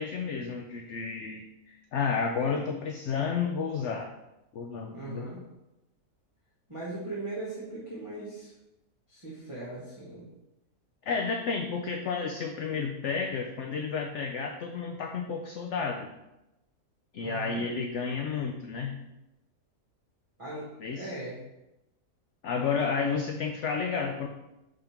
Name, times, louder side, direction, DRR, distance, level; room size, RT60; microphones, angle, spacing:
voice 1, 0.0-4.1 4.5-5.3 11.0-16.1 17.1-19.0 20.8-21.1 22.4-24.3, left 5 dB, 65° left, 3 dB, 0.8 m, -31 dB
voice 2, 4.9-5.4 6.7-8.5 9.1-10.2 17.2-17.6 20.4-21.4, right 2 dB, 20° right, -7 dB, 1.3 m, -39 dB
5.2 x 3.7 x 5.8 m, 0.94 s
omnidirectional pair, 1.6 m